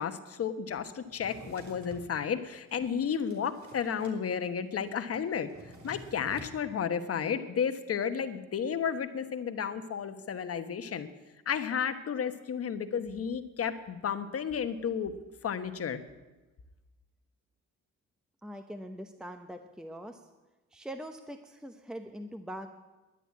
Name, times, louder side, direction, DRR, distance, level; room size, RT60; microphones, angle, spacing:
voice 1, 0.0-5.5 5.8-11.1 11.5-15.1 15.4-16.0, left 7 dB, 50° left, 9 dB, 1.2 m, -32 dB
Drawer open or close, 1.1-2.1 2.7-4.2 4.4-4.5 4.8-6.6, right 1 dB, 70° right, 3.2 m, -49 dB
voice 2, 18.4-20.2 20.7-22.7, equal, ahead, 6 dB, 0.9 m, -42 dB
11.5 x 9.9 x 8.5 m, 1.1 s
cardioid pair, 90°, 30 cm